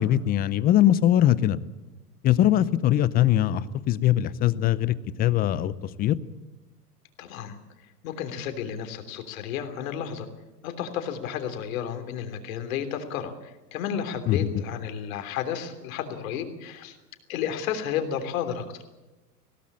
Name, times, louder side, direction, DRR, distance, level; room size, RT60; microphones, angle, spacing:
voice 1, 0.0-1.6 2.2-5.7 6.0-6.2 14.3-14.5, left 12 dB, 20° left, 18 dB, 0.6 m, -21 dB
voice 2, 7.2-7.5 8.0-10.3 10.6-17.0 17.3-18.6, left 8 dB, 55° left, 8 dB, 3.3 m, -32 dB
20.0 x 17.0 x 8.5 m, 1.1 s
hypercardioid pair, 120°, 48 cm